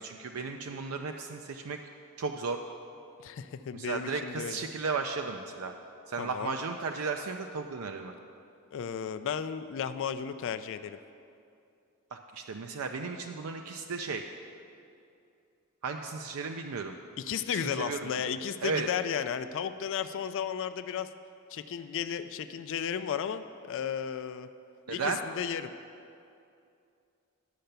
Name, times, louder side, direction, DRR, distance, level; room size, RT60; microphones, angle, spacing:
voice 1, 0.0-1.8 2.2-2.6 3.7-5.7 6.1-8.1 12.1-14.2 15.8-17.0 17.5-18.1 18.6-18.9 24.9-25.2, right 4 dB, 70° right, 4 dB, 0.5 m, -35 dB
voice 2, 3.2-4.7 6.2-6.5 8.7-11.0 17.2-21.1 21.5-24.5 24.9-25.7, left 8 dB, 60° left, 11 dB, 0.3 m, -34 dB
10.0 x 5.7 x 6.7 m, 2.5 s
head